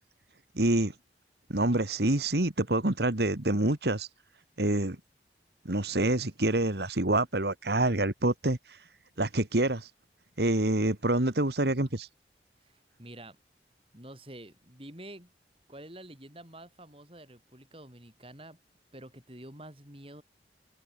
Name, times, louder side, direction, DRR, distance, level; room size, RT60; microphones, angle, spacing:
voice 1, 0.6-0.9 1.5-4.1 4.6-5.0 5.7-8.6 9.2-9.9 10.4-12.1, right 1 dB, 65° right, 2.0 m, -26 dB
voice 2, 12.6-13.4 13.9-15.3 15.7-18.6 18.9-20.2, right 1 dB, 30° right, 6.2 m, -48 dB
head